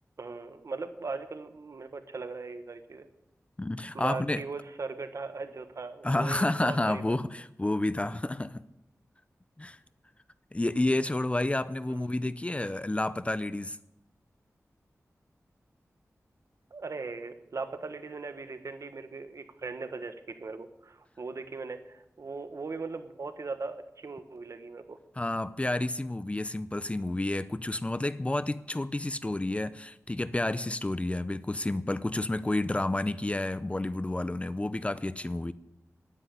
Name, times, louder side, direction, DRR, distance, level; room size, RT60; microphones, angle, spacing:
voice 1, 0.2-3.1 3.9-7.2 11.9-12.1 16.7-25.0, right 4 dB, 65° right, 1.3 m, -39 dB
voice 2, 3.6-4.4 6.0-8.6 9.6-9.8 10.5-13.8 25.2-35.5, left 2 dB, 20° left, 0.6 m, -30 dB
10.5 x 9.9 x 9.7 m
wide cardioid pair, 70°, 6 cm